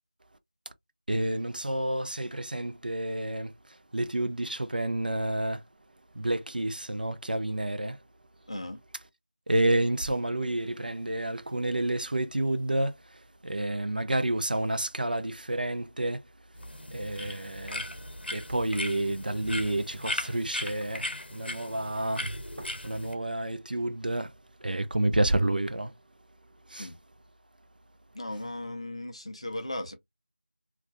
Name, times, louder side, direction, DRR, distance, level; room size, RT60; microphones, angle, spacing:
voice 1, 1.1-5.6 6.1-8.0 9.5-16.3 16.9-17.9 18.3-24.3 24.6-25.9 26.7-26.9, right 1 dB, 55° right, 0.4 m, -30 dB
voice 2, 8.5-8.8 26.8-27.0 28.1-30.0, left 1 dB, 35° left, 0.5 m, -36 dB
sound 1, 16.6-23.1, left 1 dB, 75° left, 0.7 m, -38 dB
2.3 x 2.1 x 2.5 m
figure-of-eight pair, 175°, 6 cm